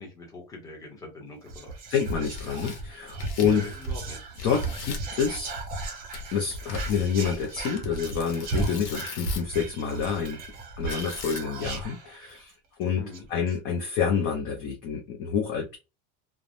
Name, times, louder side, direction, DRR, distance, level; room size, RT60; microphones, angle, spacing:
voice 1, 0.0-1.8 3.4-4.3 12.9-13.3, left 1 dB, 10° left, -1 dB, 0.7 m, -41 dB
Whispering, 1.4-12.5 12.8-12.9 13.1-13.5, right 3 dB, 25° right, 0.5 m, -35 dB
voice 2, 1.9-3.6 4.4-5.5 6.3-10.4 10.8-12.5 12.8-13.0 13.3-15.8, left 7 dB, 30° left, 2 dB, 0.3 m, -28 dB
Tearing, 2.1-4.1 4.4-5.1 6.1-9.6 10.9-11.7, left 6 dB, 85° left, 0.9 m, -42 dB
3.2 x 2.0 x 2.4 m, 0.28 s
cardioid pair, 175°, 34 cm